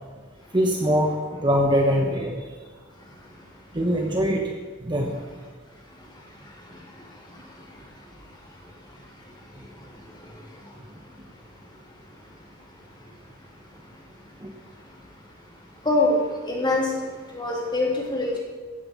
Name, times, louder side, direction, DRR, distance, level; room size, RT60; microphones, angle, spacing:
voice 1, 0.5-2.3 3.7-4.4 4.8-5.1 14.4-14.5, equal, 20° right, 1 dB, 1.2 m, -22 dB
voice 2, 3.0-3.5 5.9-10.8 11.6-12.7 13.0-13.1 13.9-15.0 15.5-15.6 15.8-18.4, left 2 dB, 20° left, -3 dB, 3.4 m, -30 dB
15.5 x 7.9 x 6.9 m, 1.5 s
head